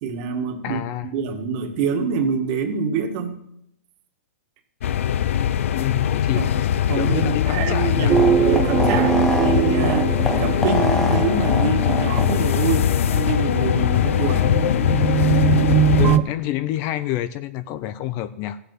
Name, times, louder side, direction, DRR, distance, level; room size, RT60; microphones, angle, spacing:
voice 1, 0.0-3.4 6.4-6.6 6.9-14.5, right 6 dB, 40° right, 5 dB, 1.8 m, -25 dB
voice 2, 0.6-1.1 5.7-6.4 7.0-8.2 15.9-18.6, left 13 dB, 30° left, 14 dB, 0.6 m, -28 dB
sound 1, 4.8-16.2, left 10 dB, 70° left, 0.7 m, -21 dB
sound 2, 7.8-12.8, left 2 dB, 5° left, 0.9 m, -27 dB
sound 3, 8.1-11.2 13.5-16.2, right 10 dB, 20° right, 0.5 m, -21 dB
15.0 x 8.3 x 7.7 m, 0.78 s
hypercardioid pair, 150°, 7 cm